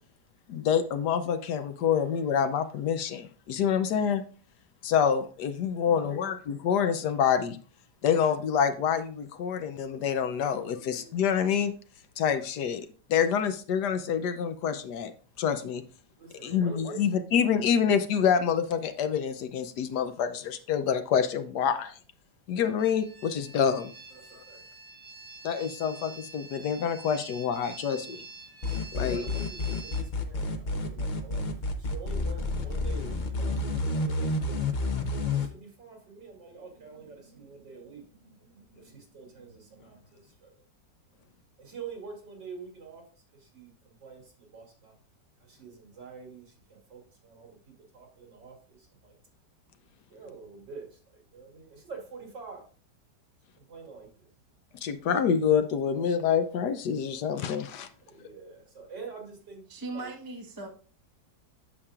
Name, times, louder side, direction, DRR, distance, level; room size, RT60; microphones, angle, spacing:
voice 1, 0.5-4.2 4.8-7.6 8.0-11.7 12.2-15.1 15.4-15.8 16.4-21.9 22.5-23.9 25.4-28.2 28.9-29.2 54.8-57.9, left 7 dB, 75° left, 1.2 m, -27 dB
voice 2, 5.8-6.4 10.8-11.0 59.7-60.7, right 2 dB, 15° right, 1.0 m, -40 dB
voice 3, 16.2-17.0 24.1-24.6 28.9-33.6 33.9-40.5 41.1-41.2 41.6-43.0 43.3-44.9 45.4-49.1 50.1-52.6 53.5-54.3 58.0-59.6 59.9-60.1, right 5 dB, 80° right, 3.2 m, -46 dB
sound 1, 22.8-30.0, right 3 dB, 65° right, 4.1 m, -47 dB
sound 2, 28.6-35.5, left 3 dB, 55° left, 0.5 m, -29 dB
8.7 x 7.1 x 2.4 m
omnidirectional pair, 1.9 m